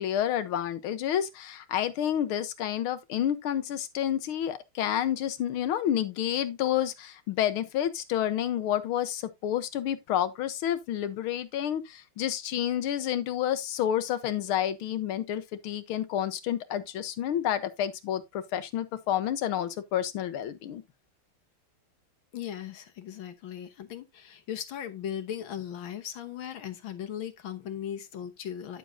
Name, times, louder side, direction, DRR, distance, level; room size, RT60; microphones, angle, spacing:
voice 1, 0.0-20.8, left 10 dB, 90° left, 1.8 m, -29 dB
voice 2, 22.3-28.8, left 9 dB, 70° left, 1.9 m, -38 dB
10.5 x 7.0 x 2.6 m
omnidirectional pair, 2.3 m